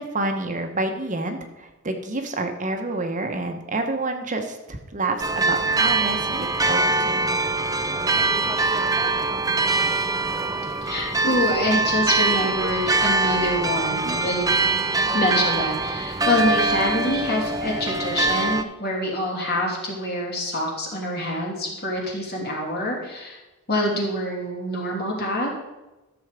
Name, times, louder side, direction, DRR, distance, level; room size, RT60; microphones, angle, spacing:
voice 1, 0.0-7.4, right 2 dB, 35° right, 5 dB, 1.0 m, -28 dB
sound 1, 5.2-18.6, right 3 dB, 15° right, 0.5 m, -23 dB
voice 2, 10.8-14.5 15.1-23.4 23.7-25.5, left 1 dB, 45° left, -2 dB, 2.9 m, -26 dB
12.5 x 7.1 x 5.0 m, 1.1 s
head